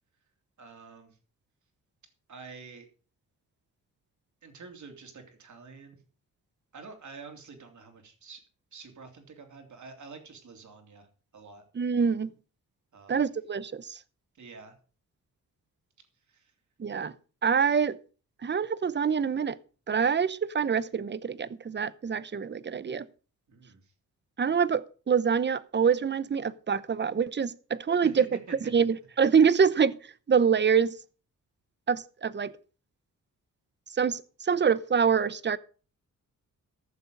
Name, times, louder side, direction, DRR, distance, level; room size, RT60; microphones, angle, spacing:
voice 1, 0.6-1.2 2.3-2.8 4.4-6.0 6.7-8.4 8.7-11.1 11.3-11.6 12.9-13.2 14.3-14.7 16.3-16.5 23.5-23.9 27.9-28.5, right 4 dB, 60° right, 3.2 m, -48 dB
voice 2, 11.7-12.3 13.1-14.0 16.8-17.1 17.4-18.0 18.4-19.6 19.9-23.0 24.4-28.3 28.7-29.9 30.3-30.9 31.9-32.5 34.0-35.6, right 6 dB, 35° right, 0.8 m, -25 dB
14.5 x 6.9 x 5.3 m
cardioid pair, 80°, 33 cm